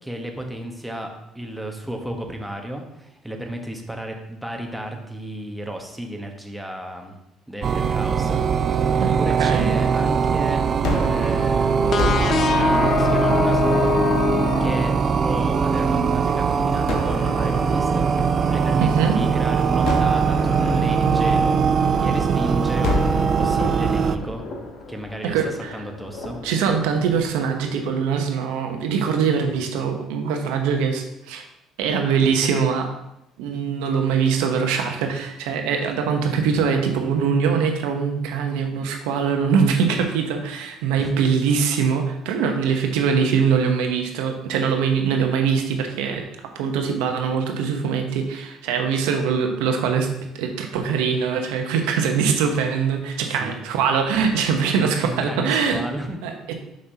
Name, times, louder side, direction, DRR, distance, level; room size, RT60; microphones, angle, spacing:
voice 1, 0.0-7.2 7.5-8.4 8.7-10.6 11.0-12.3 12.7-13.9 14.6-18.1 18.5-24.4 24.9-26.4 36.2-36.4 41.0-41.1 53.4-53.6 55.0-56.2, right 1 dB, 5° right, 2 dB, 1.1 m, -32 dB
sound 1, 7.6-24.2, right 6 dB, 45° right, 0.4 m, -21 dB
voice 2, 9.0-9.7 18.8-19.2 25.2-25.8 26.4-31.4 31.8-32.9 33.4-46.2 46.5-50.1 50.3-55.8 56.2-56.5, right 6 dB, 85° right, 4 dB, 0.8 m, -22 dB
Gunshot gunfire, 10.8-16.0 16.9-19.3 19.9-22.3 22.8-28.0, left 3 dB, 70° left, 1.0 m, -32 dB
sound 2, 11.9-15.4, left 6 dB, 55° left, 0.5 m, -23 dB
6.3 x 5.6 x 2.8 m, 0.84 s
supercardioid pair, 80°, 0 cm